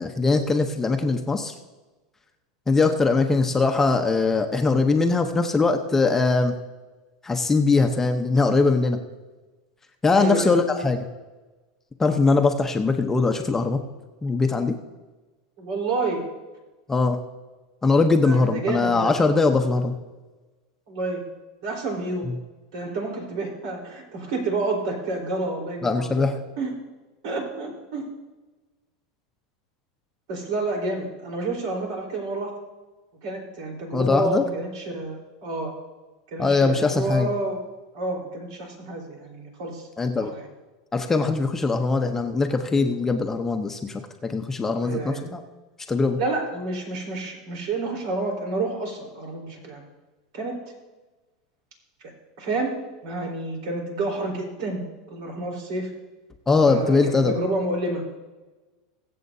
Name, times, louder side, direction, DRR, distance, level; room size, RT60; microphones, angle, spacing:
voice 1, 0.0-1.5 2.7-6.6 7.2-9.0 10.0-11.1 12.0-13.8 14.2-14.8 16.9-17.2 17.8-20.0 22.2-22.3 25.8-26.4 33.9-34.4 36.4-37.3 40.0-40.3 40.9-45.4 45.9-46.2 56.5-57.3, left 3 dB, 10° left, 5 dB, 0.8 m, -21 dB
voice 2, 10.1-10.6 15.6-16.2 18.2-19.1 20.9-21.2 21.6-22.3 22.7-26.3 26.6-26.7 27.2-28.0 30.3-32.5 33.2-35.7 36.3-37.6 37.9-39.9 40.2-40.5 44.8-45.2 46.2-49.8 50.3-50.5 52.4-52.7 53.0-54.8 55.1-55.9 56.7-58.0, right 2 dB, 65° right, 1 dB, 4.0 m, -29 dB
23.0 x 7.8 x 2.7 m, 1.2 s
supercardioid pair, 135°, 3 cm